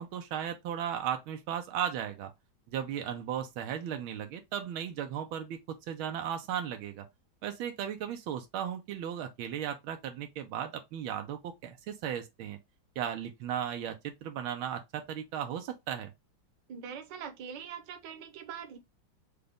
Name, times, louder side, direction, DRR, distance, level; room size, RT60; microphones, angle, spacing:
voice 1, 0.0-2.3 2.7-7.1 7.4-12.6 13.0-16.1, right 9 dB, 85° right, 1.5 m, -36 dB
voice 2, 16.7-18.8, right 7 dB, 70° right, 1.5 m, -43 dB
5.1 x 2.3 x 3.4 m
omnidirectional pair, 2.2 m